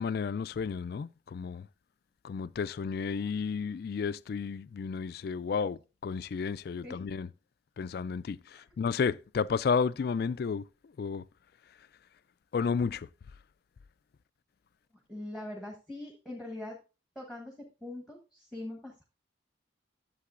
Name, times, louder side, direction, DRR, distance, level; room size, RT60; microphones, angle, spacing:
voice 1, 0.0-1.7 2.2-7.3 7.8-10.6 11.0-11.2 12.5-13.1, left 5 dB, 50° left, 0.3 m, -32 dB
voice 2, 15.1-16.8 17.1-19.0, left 1 dB, 5° right, 1.3 m, -42 dB
11.5 x 7.5 x 2.5 m
head